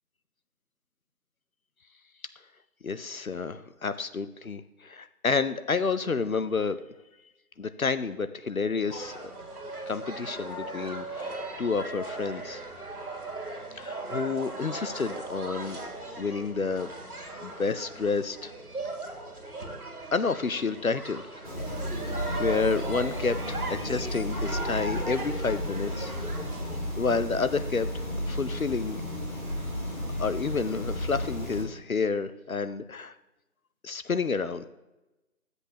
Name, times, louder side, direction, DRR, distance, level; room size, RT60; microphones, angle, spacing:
voice 1, 2.8-6.8 7.6-9.3 9.9-12.6 13.7-16.9 17.4-18.5 20.1-21.3 22.1-26.1 27.0-29.0 30.2-33.1 33.8-34.7, left 4 dB, 65° left, 12 dB, 0.6 m, -30 dB
sound 1, 8.9-26.8, right 2 dB, 75° right, 2.1 m, -38 dB
sound 2, 21.4-31.6, left 1 dB, 30° left, 2.0 m, -33 dB
12.5 x 7.9 x 2.8 m, 1.0 s
figure-of-eight pair, 175°, 45 cm